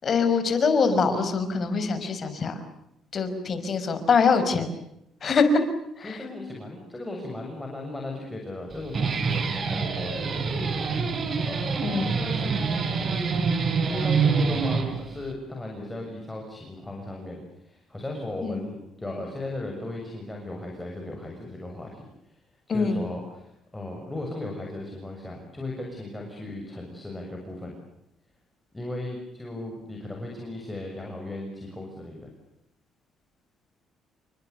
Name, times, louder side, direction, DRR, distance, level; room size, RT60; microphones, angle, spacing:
voice 1, 0.0-2.6 3.1-4.7 5.2-5.6 6.0-6.2 11.8-12.1 18.4-18.6 22.7-23.1, left 4 dB, 40° left, 9 dB, 5.4 m, -23 dB
voice 2, 6.0-11.1 11.4-22.4 22.7-27.7 28.7-32.3, left 1 dB, 10° left, 0 dB, 7.1 m, -37 dB
Guitar, 8.7-15.3, right 5 dB, 40° right, 4.4 m, -26 dB
30.0 x 24.5 x 7.0 m, 0.82 s
cardioid pair, 130°, 0 cm